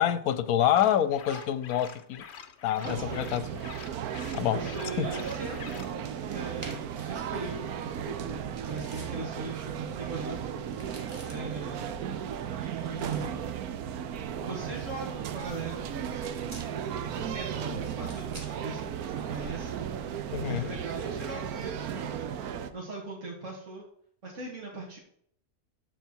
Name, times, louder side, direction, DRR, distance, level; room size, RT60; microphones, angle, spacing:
voice 1, 0.0-2.2 2.6-3.5 4.4-4.6 5.0-5.1 20.3-20.7, left 11 dB, 75° left, 1.1 m, -26 dB
sound 1, 0.6-6.0, left 7 dB, 55° left, 0.9 m, -46 dB
voice 2, 2.7-3.3 4.5-5.8 6.3-10.4 11.2-12.0 12.6-13.6 14.4-16.3 16.9-19.8 20.5-23.9 24.2-25.0, right 3 dB, 55° right, 2.5 m, -40 dB
sound 2, 2.8-22.7, right 8 dB, 80° right, 1.2 m, -35 dB
sound 3, 5.3-19.9, right 1 dB, 25° right, 1.8 m, -54 dB
14.0 x 4.7 x 4.5 m
omnidirectional pair, 1.6 m